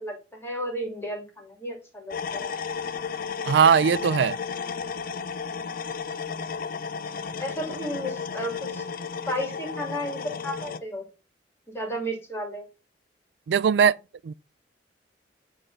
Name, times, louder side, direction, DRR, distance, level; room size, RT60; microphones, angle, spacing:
voice 1, 0.0-2.5 7.4-8.8 9.3-11.1 11.7-12.6, equal, 15° left, 2.5 m, -33 dB
sound 1, 2.1-10.8, left 5 dB, 55° left, 0.5 m, -33 dB
voice 2, 3.5-4.4 13.5-14.0 14.2-14.3, right 7 dB, 75° right, 0.3 m, -19 dB
8.6 x 3.6 x 5.3 m
head